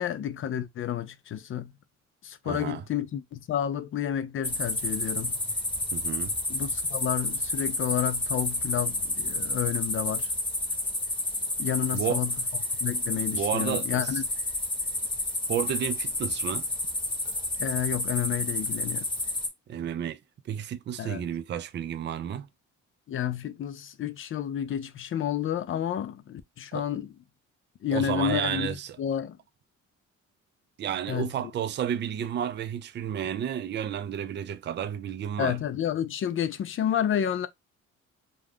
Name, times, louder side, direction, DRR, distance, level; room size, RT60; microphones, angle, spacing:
voice 1, 0.0-1.7 2.2-5.4 6.5-10.3 11.6-12.3 12.8-14.2 17.6-19.1 21.0-21.2 23.1-27.1 27.8-29.4 31.1-31.3 35.4-37.5, left 10 dB, 45° left, 0.4 m, -30 dB
voice 2, 2.4-2.8 5.9-6.3 11.9-12.2 13.3-14.2 15.5-16.7 19.7-22.5 26.7-26.9 27.9-29.0 30.8-35.6, right 9 dB, 40° right, 0.4 m, -31 dB
sound 1, 4.4-19.5, left 1 dB, 15° left, 1.0 m, -30 dB
2.4 x 2.2 x 3.4 m
cardioid pair, 90°, 30 cm